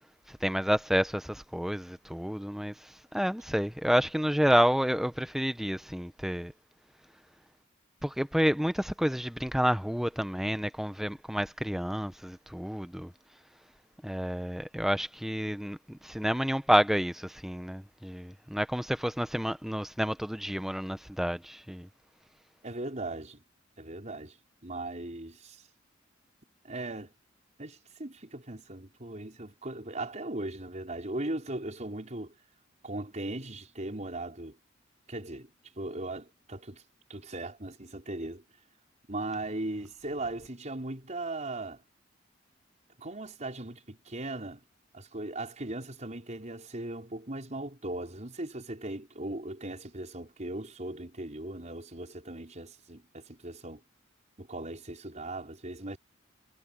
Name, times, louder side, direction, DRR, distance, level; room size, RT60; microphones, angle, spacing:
voice 1, 0.3-2.7 3.1-6.5 8.0-13.1 14.0-21.9, equal, ahead, 0.8 m, -29 dB
voice 2, 22.6-23.4 23.8-24.4 24.6-25.6 26.6-27.1 27.6-32.3 32.8-34.6 35.1-35.5 35.8-36.8 37.1-38.4 39.1-41.8 43.0-44.6 44.9-53.8 54.4-56.0, right 2 dB, 40° right, 4.9 m, -38 dB
head